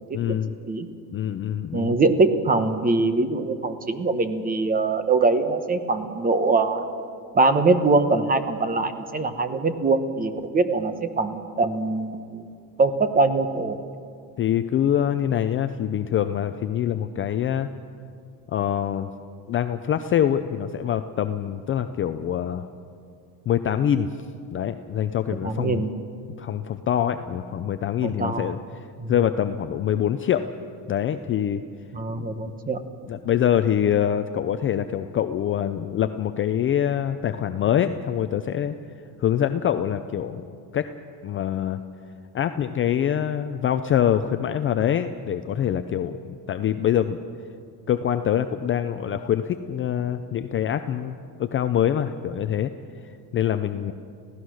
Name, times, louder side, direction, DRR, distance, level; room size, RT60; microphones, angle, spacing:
voice 1, 0.1-0.5 1.1-2.0 14.4-17.7 18.5-19.1 19.5-22.7 23.5-24.1 24.5-25.8 26.4-30.5 30.9-31.6 32.2-32.3 33.1-38.8 39.2-40.9 41.2-41.8 42.3-46.2 46.5-47.2 47.9-52.7 53.3-53.9, left 10 dB, 30° left, 9 dB, 0.5 m, -25 dB
voice 2, 1.7-6.9 7.3-12.5 12.8-13.8 25.4-25.9 28.0-28.5 29.0-29.1 31.9-32.8, right 3 dB, 20° right, 10 dB, 1.2 m, -23 dB
26.0 x 16.5 x 6.4 m, 2.4 s
cardioid pair, 140°, 45 cm